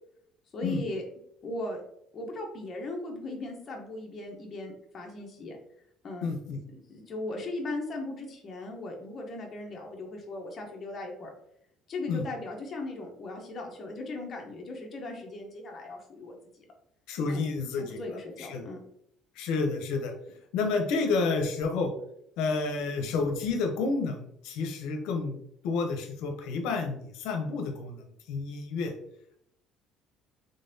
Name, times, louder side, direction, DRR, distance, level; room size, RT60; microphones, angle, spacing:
voice 1, 0.5-1.0 1.4-1.8 2.1-5.6 6.0-6.3 6.9-11.3 11.9-16.6 17.3-17.4 17.8-18.8, left 2 dB, 30° left, 1 dB, 0.8 m, -38 dB
voice 2, 6.2-6.6 12.1-12.2 17.1-18.7 19.4-20.1 20.5-21.9 22.4-25.4 25.6-28.9, left 4 dB, 85° left, 4 dB, 0.6 m, -30 dB
3.9 x 3.3 x 2.6 m, 0.74 s
cardioid pair, 145°, 0 cm